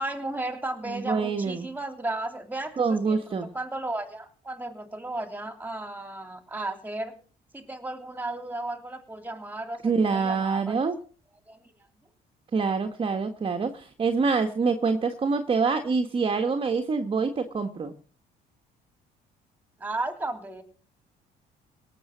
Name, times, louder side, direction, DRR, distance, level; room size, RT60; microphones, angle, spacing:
voice 1, 0.0-7.1 7.5-10.7 11.5-11.7 19.8-20.6, right 2 dB, 10° right, 8 dB, 3.0 m, -34 dB
voice 2, 0.9-1.7 2.8-3.5 9.8-11.0 12.5-17.9, right 4 dB, 30° right, 7 dB, 1.5 m, -26 dB
18.0 x 7.3 x 7.3 m, 0.42 s
cardioid pair, 110°, 17 cm